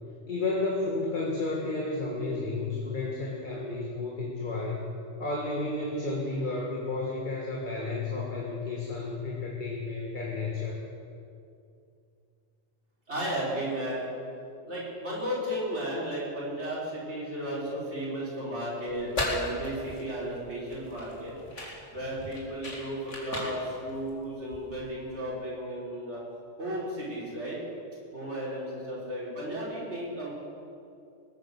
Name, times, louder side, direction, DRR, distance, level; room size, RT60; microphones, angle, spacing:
voice 1, 0.3-4.8 5.2-10.8, left 3 dB, 40° left, -2 dB, 1.9 m, -32 dB
voice 2, 13.1-14.1 14.6-21.3 21.9-26.2 26.6-27.6 28.1-30.3, right 1 dB, 65° right, -7 dB, 5.7 m, -34 dB
sound 1, 18.9-24.9, left 2 dB, 80° left, 3.2 m, -37 dB
20.5 x 9.6 x 7.0 m, 2.5 s
omnidirectional pair, 1.2 m